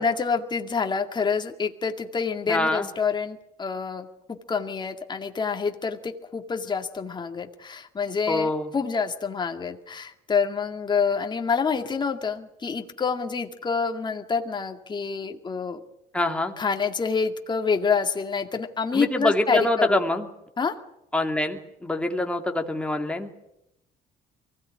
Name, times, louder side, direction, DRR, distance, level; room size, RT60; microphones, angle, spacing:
voice 1, 0.0-4.1 4.5-15.8 16.6-20.0 20.6-20.8, left 5 dB, 25° left, 5 dB, 2.1 m, -27 dB
voice 2, 2.5-2.9 8.3-8.7 16.1-16.5 18.9-20.2 21.1-23.3, left 1 dB, 5° left, 3 dB, 2.7 m, -25 dB
24.0 x 16.5 x 9.8 m, 0.86 s
cardioid pair, 110°, 17 cm